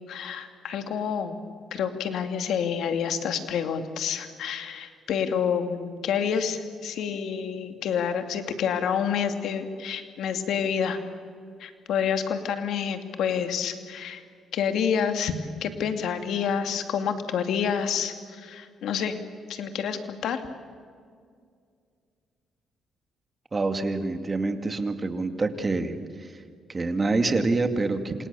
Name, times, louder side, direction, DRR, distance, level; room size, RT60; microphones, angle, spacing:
voice 1, 0.1-1.4 1.7-11.0 11.6-14.2 14.5-15.3 15.6-19.2 19.5-20.4, left 7 dB, 75° left, 7 dB, 2.4 m, -28 dB
voice 2, 23.5-26.4 26.7-28.3, right 3 dB, 30° right, 8 dB, 2.4 m, -26 dB
27.5 x 27.0 x 7.0 m, 2.2 s
cardioid pair, 90°, 0 cm